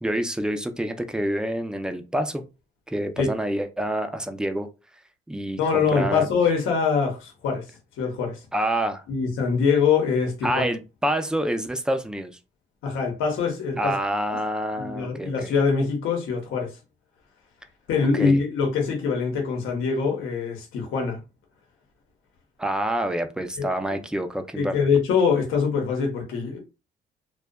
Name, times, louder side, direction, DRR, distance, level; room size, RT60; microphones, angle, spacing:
voice 1, 0.0-2.4 2.9-4.7 5.3-6.3 8.5-9.0 10.4-12.4 13.8-15.5 18.1-18.4 22.6-24.8, right 1 dB, 5° right, 0.4 m, -27 dB
voice 2, 5.6-7.7 8.0-8.5 9.1-10.6 12.8-14.0 14.8-16.8 17.9-21.2 23.6-23.7 24.5-26.6, left 5 dB, 85° left, 0.8 m, -23 dB
2.6 x 2.2 x 2.2 m
cardioid pair, 90°, 20 cm